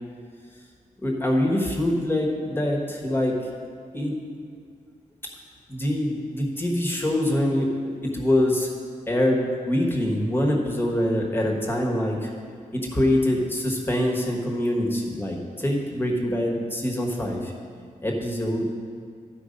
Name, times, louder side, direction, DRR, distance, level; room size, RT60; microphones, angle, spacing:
voice 1, 1.0-3.4 3.9-4.1 5.7-7.7 8.0-8.7 9.1-12.3 12.7-17.5 18.0-18.7, left 1 dB, 15° left, -1 dB, 1.3 m, -24 dB
12.5 x 4.8 x 5.2 m, 2.1 s
wide cardioid pair, 135°, 14 cm